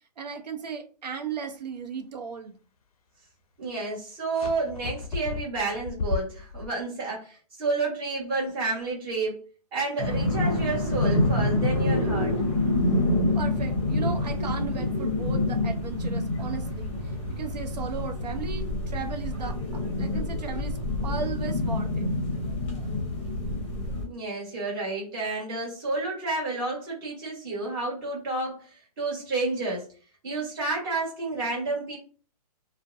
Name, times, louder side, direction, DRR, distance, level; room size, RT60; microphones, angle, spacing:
voice 1, 0.2-2.6 13.3-20.8 21.0-22.2, right 6 dB, 85° right, 6 dB, 0.7 m, -36 dB
voice 2, 3.6-9.5 9.7-12.4 24.0-29.9 30.2-32.0, right 3 dB, 35° right, -5 dB, 1.4 m, -30 dB
sound 1, 4.3-6.7, left 4 dB, 65° left, 0.4 m, -33 dB
sound 2, 10.0-24.1, left 2 dB, 20° left, 0.7 m, -27 dB
2.5 x 2.1 x 2.5 m, 0.38 s
hypercardioid pair, 165°, 21 cm